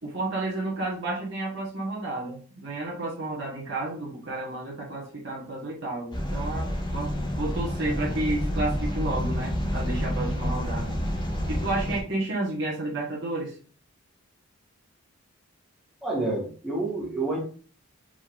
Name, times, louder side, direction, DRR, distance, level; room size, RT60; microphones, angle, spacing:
voice 1, 0.0-11.0 11.5-13.6, right 2 dB, 55° right, -4 dB, 1.3 m, -31 dB
sound 1, 6.1-12.0, equal, 20° left, 0.9 m, -29 dB
voice 2, 16.0-17.4, right 2 dB, ahead, -7 dB, 1.2 m, -28 dB
5.0 x 3.8 x 2.4 m, 0.40 s
head